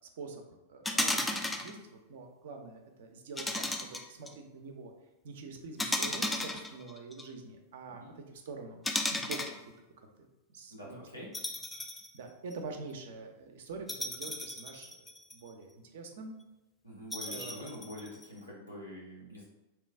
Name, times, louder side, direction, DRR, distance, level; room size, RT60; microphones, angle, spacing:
voice 1, 0.7-4.9 5.2-8.8 9.1-9.4 10.5-11.2 12.1-14.9 15.3-16.3 17.2-17.7, right 4 dB, 55° right, 4 dB, 0.5 m, -45 dB
sound 1, 0.8-1.7 3.4-4.3 5.8-7.2 8.8-9.6 11.3-12.1 12.5-12.6 13.9-15.5 17.1-18.2, left 1 dB, 10° left, 0.3 m, -34 dB
voice 2, 10.7-11.3 16.8-19.4, equal, 90° left, -6 dB, 1.0 m, -45 dB
3.0 x 2.2 x 3.3 m, 1.0 s
figure-of-eight pair, 90°, 0 cm